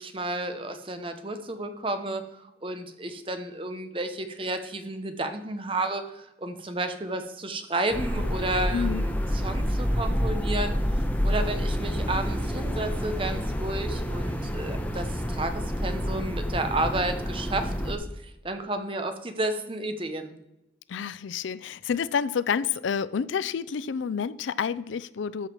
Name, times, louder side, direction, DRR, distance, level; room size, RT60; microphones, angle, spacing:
voice 1, 0.0-2.2 2.6-10.7 11.2-20.4, right 2 dB, 30° right, 0.9 m, -32 dB
sound 1, 7.9-18.0, equal, 10° left, 0.9 m, -28 dB
voice 2, 8.7-9.1 20.9-25.5, left 6 dB, 85° left, 0.4 m, -29 dB
13.0 x 5.7 x 4.5 m
head